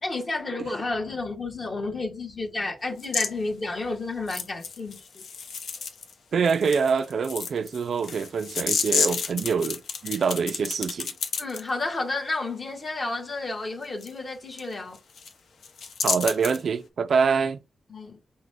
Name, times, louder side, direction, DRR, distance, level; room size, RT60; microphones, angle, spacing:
voice 1, 0.0-5.2 11.4-15.0 17.9-18.2, left 2 dB, 35° left, 1.2 m, -31 dB
sound 1, 3.0-3.3 4.3-6.1 6.4-11.6 14.0-14.1 14.6-14.7 14.9-15.3 15.6-16.6, left 5 dB, 75° left, 0.8 m, -30 dB
voice 2, 6.3-11.1 16.0-17.6, right 5 dB, 60° right, 0.4 m, -25 dB
5.9 x 2.1 x 3.2 m
wide cardioid pair, 150°, 0 cm